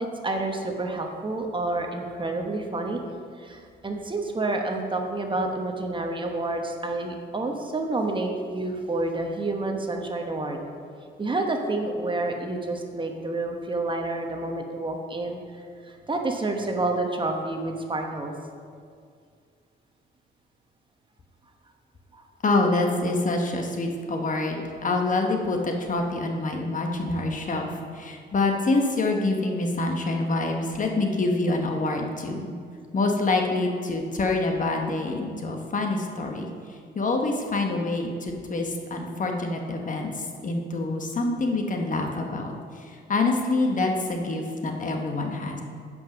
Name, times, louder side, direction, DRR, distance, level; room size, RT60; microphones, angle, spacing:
voice 1, 0.2-3.0 3.4-10.6 11.2-18.3 22.1-22.2, right 2 dB, 25° right, 3 dB, 1.1 m, -29 dB
voice 2, 22.4-27.7 27.9-32.6 32.9-36.5 36.9-45.6, left 2 dB, 40° left, 2 dB, 1.2 m, -26 dB
9.0 x 5.4 x 6.2 m, 2.2 s
cardioid pair, 90°, 20 cm